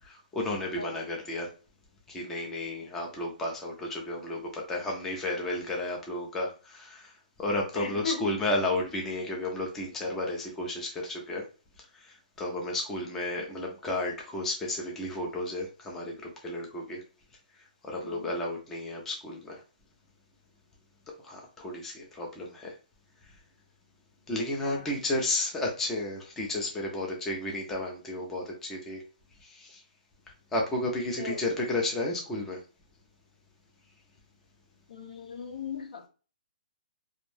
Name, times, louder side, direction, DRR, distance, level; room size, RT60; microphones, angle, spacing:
voice 1, 0.0-1.5 2.1-11.5 11.9-17.0 17.5-19.6 21.2-22.8 23.3-23.4 24.3-29.0 29.4-29.8 30.5-32.6, left 1 dB, 5° left, 0.4 m, -33 dB
voice 2, 7.7-8.3 18.0-18.3 24.6-25.0 31.2-31.5 34.9-36.1, left 5 dB, 65° left, 0.6 m, -37 dB
2.5 x 2.1 x 3.2 m
hypercardioid pair, 165°, 5 cm